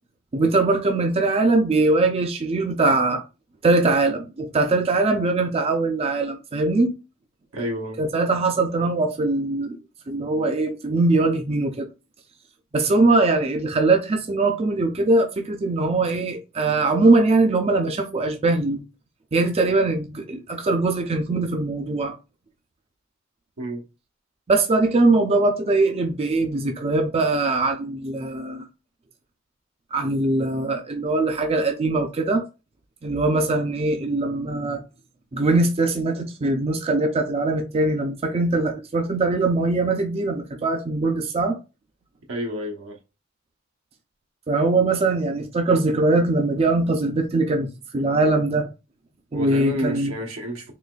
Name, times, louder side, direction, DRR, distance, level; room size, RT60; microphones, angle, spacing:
voice 1, 0.3-3.2 3.6-6.9 8.0-9.8 10.1-11.9 12.7-18.8 19.3-22.1 24.5-28.7 29.9-32.4 33.0-34.8 35.3-41.6 44.5-48.7 49.3-50.1, right 2 dB, 30° right, 0.4 m, -21 dB
voice 2, 7.5-8.0 23.6-23.8 42.3-43.0 49.3-50.8, equal, 85° right, 1.0 m, -30 dB
3.9 x 3.0 x 2.3 m
head